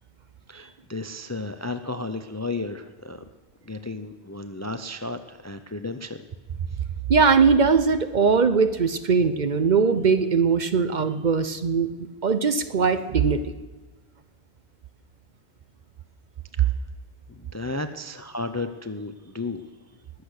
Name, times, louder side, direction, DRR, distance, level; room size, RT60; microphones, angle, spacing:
voice 1, 0.5-3.2 3.6-6.2 16.6-16.7 17.3-19.7, left 2 dB, 20° left, 9 dB, 0.4 m, -33 dB
voice 2, 7.1-11.9 12.2-13.4, right 5 dB, 50° right, 10 dB, 0.8 m, -20 dB
20.0 x 8.2 x 6.5 m, 1.3 s
omnidirectional pair, 1.1 m